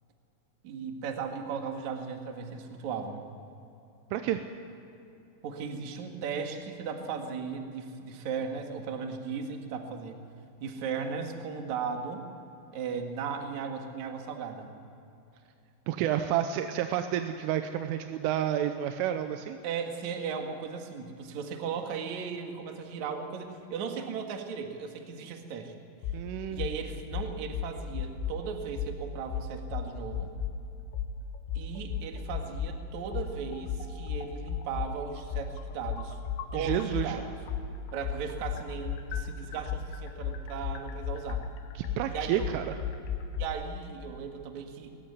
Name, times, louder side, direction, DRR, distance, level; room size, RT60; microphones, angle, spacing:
voice 1, 0.6-3.2 5.4-10.2 10.6-12.3 12.7-14.7 19.6-25.7 26.5-30.3 31.5-36.2 36.5-37.4 37.9-41.4 42.1-42.5 43.4-44.9, right 6 dB, 55° right, 4 dB, 2.2 m, -36 dB
voice 2, 4.1-4.4 15.9-19.6 26.1-26.7 36.5-37.2 41.8-42.8, right 11 dB, 85° right, 7 dB, 3.3 m, -30 dB
sound 1, 26.0-26.2 26.6-26.8 27.1-28.4 28.8-28.9 29.3-30.6 30.9-31.1 31.5-32.8 33.1-37.1 37.5-43.5, left 8 dB, 85° left, 3.6 m, -34 dB
21.0 x 15.5 x 9.5 m, 2.8 s
omnidirectional pair, 5.7 m